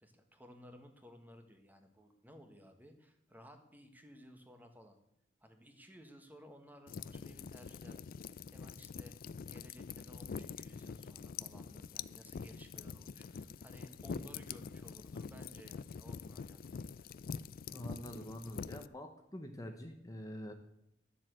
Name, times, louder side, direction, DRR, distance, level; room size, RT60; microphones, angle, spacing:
voice 1, 0.0-5.0 5.4-9.2 9.5-17.1, equal, 10° right, 5 dB, 1.4 m, -57 dB
sound 1, 6.9-18.9, left 6 dB, 50° left, 0.4 m, -45 dB
voice 2, 17.6-20.5, equal, 20° left, 4 dB, 1.0 m, -46 dB
12.0 x 7.6 x 7.7 m, 0.79 s
head